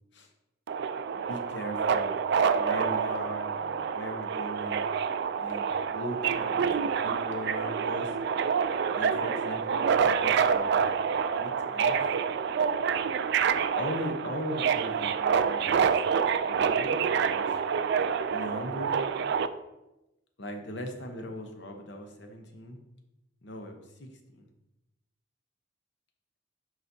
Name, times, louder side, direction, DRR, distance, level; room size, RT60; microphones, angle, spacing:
Subway metro underground, 0.7-19.5, right 6 dB, 60° right, 0.3 m, -27 dB
voice 1, 1.1-2.2 2.5-4.9 5.4-6.7 7.0-8.1 8.9-12.0 13.7-17.5 18.3-19.0 20.4-22.8 23.4-24.4, equal, 60° left, 4 dB, 0.9 m, -39 dB
10.5 x 4.0 x 2.7 m, 0.94 s
head